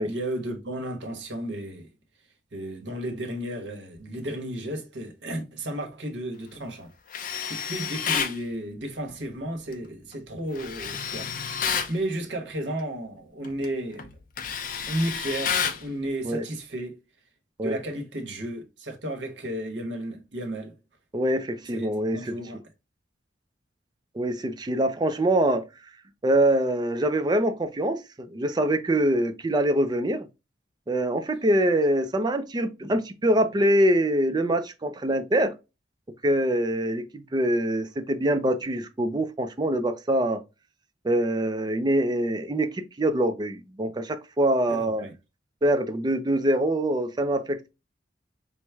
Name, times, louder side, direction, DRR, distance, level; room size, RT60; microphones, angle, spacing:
voice 1, 0.0-1.9 2.5-6.9 7.5-14.0 14.9-17.0 17.6-20.7 21.6-22.6 44.7-45.1, right 1 dB, 65° right, 1.0 m, -33 dB
Tools, 7.1-8.4 10.5-11.9 13.4-13.6 14.0-15.8, left 7 dB, 45° left, 0.5 m, -29 dB
voice 2, 21.1-22.3 24.1-25.6 26.2-30.3 30.9-35.5 36.2-40.4 41.0-45.1 45.6-47.7, right 1 dB, 20° right, 0.4 m, -24 dB
4.5 x 2.1 x 3.3 m
head